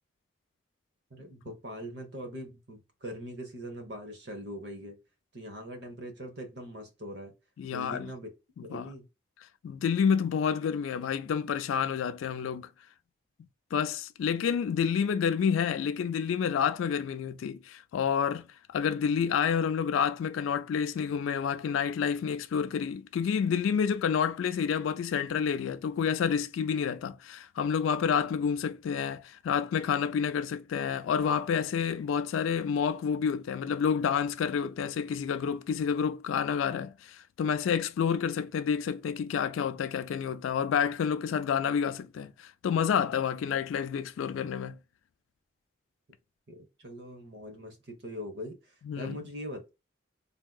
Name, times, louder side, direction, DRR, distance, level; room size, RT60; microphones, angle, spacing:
voice 1, 1.1-5.0 5.3-7.3 7.7-8.3 8.6-9.1 46.5-49.7, equal, 60° right, 0.8 m, -42 dB
voice 2, 7.6-8.1 8.7-8.9 9.6-12.7 13.7-44.8 48.8-49.2, left 7 dB, 90° left, 0.3 m, -29 dB
3.5 x 2.7 x 2.2 m
head